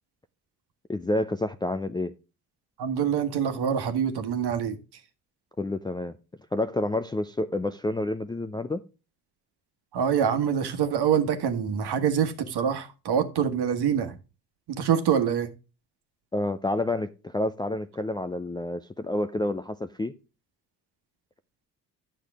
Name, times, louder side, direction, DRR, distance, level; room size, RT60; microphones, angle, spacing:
voice 1, 0.9-2.1 5.6-6.2 6.5-8.8 16.3-20.1, left 1 dB, 10° left, 0.4 m, -29 dB
voice 2, 2.8-4.8 9.9-14.1 14.7-15.5, right 8 dB, 55° right, 1.4 m, -25 dB
10.0 x 6.5 x 3.5 m
hypercardioid pair, 50°, 47 cm